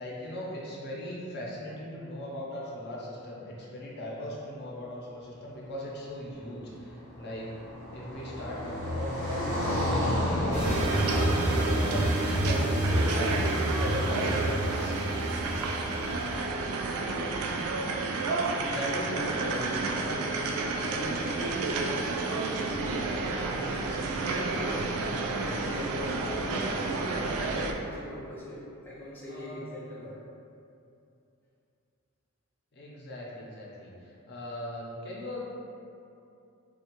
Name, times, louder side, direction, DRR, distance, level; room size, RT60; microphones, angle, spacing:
voice 1, 0.0-7.5 7.9-14.9 18.6-20.0 29.3-29.7 32.7-35.4, left 1 dB, 55° left, -4 dB, 0.6 m, -38 dB
Car passing by, 6.6-13.8, left 1 dB, 60° right, 0.9 m, -32 dB
sound 1, 10.5-16.5, right 1 dB, 35° right, 0.7 m, -29 dB
sound 2, 10.6-27.7, right 3 dB, 90° right, 0.3 m, -31 dB
voice 2, 19.9-23.8 24.1-24.8 25.0-26.9 27.2-30.2, equal, 10° left, -8 dB, 0.4 m, -41 dB
3.4 x 2.2 x 2.9 m, 2.6 s
head